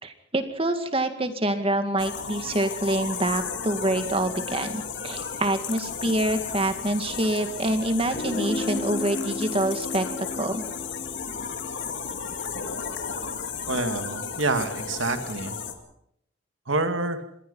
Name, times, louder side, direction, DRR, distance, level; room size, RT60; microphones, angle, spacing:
voice 1, 0.0-10.6, right 1 dB, 30° right, 8 dB, 2.1 m, -26 dB
sound 1, 2.0-15.7, left 6 dB, 65° left, 2.5 m, -34 dB
Guitar, 8.1-13.7, left 2 dB, 35° left, 4.9 m, -35 dB
voice 2, 13.7-15.6 16.7-17.2, right 3 dB, 85° right, 7 dB, 2.3 m, -27 dB
26.5 x 20.0 x 5.6 m, 0.72 s
head